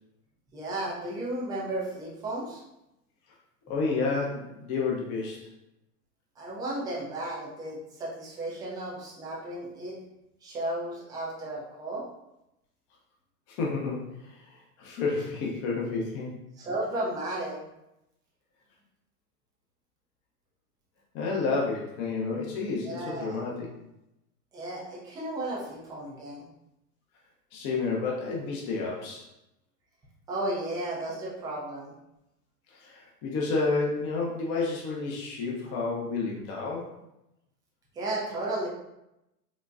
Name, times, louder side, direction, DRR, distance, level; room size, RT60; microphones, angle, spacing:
voice 1, 0.5-2.6 6.4-10.0 10.4-12.0 16.6-17.6 22.8-23.4 24.5-26.5 30.3-31.9 37.9-38.7, right 1 dB, 10° right, -5 dB, 0.3 m, -34 dB
voice 2, 3.7-5.4 13.5-14.4 14.8-16.3 21.1-23.7 27.5-29.2 32.7-36.9, left 4 dB, 35° left, -2 dB, 0.6 m, -30 dB
3.9 x 2.2 x 2.3 m, 0.89 s
hypercardioid pair, 105°, 48 cm